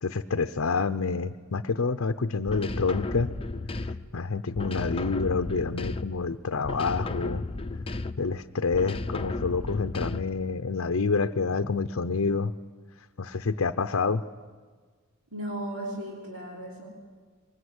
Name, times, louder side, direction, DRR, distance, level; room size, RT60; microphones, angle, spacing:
voice 1, 0.0-3.4 4.1-7.4 8.2-12.5 13.2-14.2, left 4 dB, 65° left, 8 dB, 0.7 m, -28 dB
sound 1, 2.5-4.2 4.5-6.3 6.6-8.4 8.7-10.4, left 2 dB, 25° left, 0.7 m, -34 dB
voice 2, 15.3-16.9, right 1 dB, 85° right, -4 dB, 5.5 m, -35 dB
23.5 x 21.0 x 9.7 m, 1.5 s
head